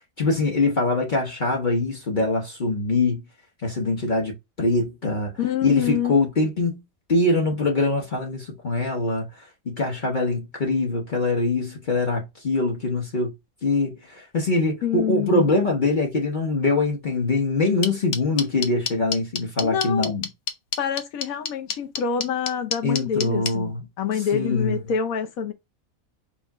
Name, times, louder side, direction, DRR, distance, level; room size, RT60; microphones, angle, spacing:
voice 1, 0.2-3.2 3.6-5.3 5.6-6.8 7.1-9.3 9.7-13.3 13.6-20.2 22.8-23.8 24.3-24.8, left 2 dB, 40° left, 1.0 m, -23 dB
voice 2, 5.4-6.2 14.8-15.5 19.6-20.1 20.8-25.5, left 8 dB, 80° left, 1.2 m, -26 dB
sound 1, 17.8-23.5, left 6 dB, 65° left, 0.9 m, -26 dB
4.5 x 2.6 x 3.5 m
omnidirectional pair, 1.5 m